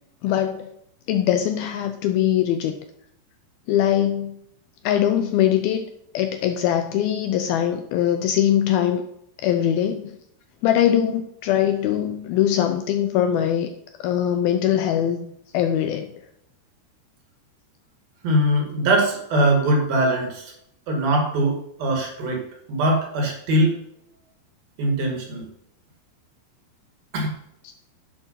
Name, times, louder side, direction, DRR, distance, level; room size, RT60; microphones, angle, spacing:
voice 1, 0.2-0.7 1.1-2.8 3.7-4.3 4.8-5.9 6.1-9.0 9.4-10.2 10.6-13.7 14.0-16.1, left 10 dB, 80° left, 7 dB, 2.3 m, -22 dB
voice 2, 18.2-20.5 20.9-23.8 24.8-25.5 27.1-27.3, right 1 dB, 60° right, 1 dB, 3.9 m, -22 dB
10.5 x 7.0 x 5.7 m, 0.75 s
omnidirectional pair, 4.9 m